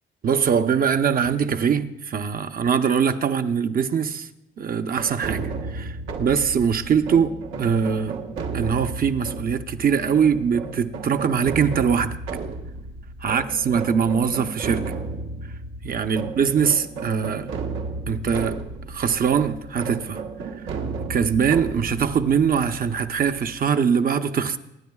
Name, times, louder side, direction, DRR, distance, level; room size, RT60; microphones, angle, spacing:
voice 1, 0.2-4.3 4.6-8.3 8.5-12.2 13.2-14.9 15.8-17.5 18.1-18.6 18.9-20.2 21.1-24.6, right 7 dB, 45° right, 0.8 m, -22 dB
sound 1, 4.9-23.7, right 4 dB, 85° right, 1.3 m, -33 dB
24.0 x 10.0 x 2.4 m
cardioid pair, 90°, 20 cm